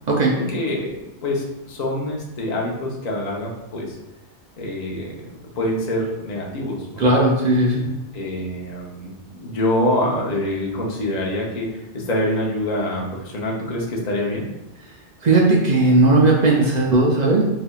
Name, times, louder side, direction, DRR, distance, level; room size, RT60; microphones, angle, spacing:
voice 1, 0.3-4.0 4.6-5.1 5.6-7.1 8.1-14.5, left 1 dB, 45° left, -2 dB, 0.6 m, -25 dB
voice 2, 7.0-7.9 15.2-17.4, right 2 dB, 60° right, -3 dB, 0.4 m, -16 dB
3.3 x 2.8 x 2.2 m, 0.98 s
omnidirectional pair, 1.2 m